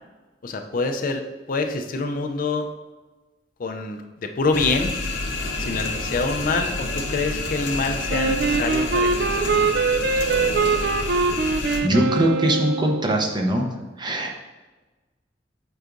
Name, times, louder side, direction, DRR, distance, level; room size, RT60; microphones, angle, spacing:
voice 1, 0.4-2.7 3.6-4.9 5.6-9.7, left 3 dB, 50° left, 5 dB, 0.4 m, -26 dB
sound 1, 4.5-11.8, left 2 dB, 85° left, 0.9 m, -28 dB
Wind instrument woodwind instrument, 8.1-13.1, right 4 dB, 60° right, 0.4 m, -23 dB
voice 2, 11.8-13.7 14.0-14.3, right 1 dB, 25° right, 2 dB, 0.7 m, -21 dB
7.9 x 4.8 x 2.5 m, 1.2 s
head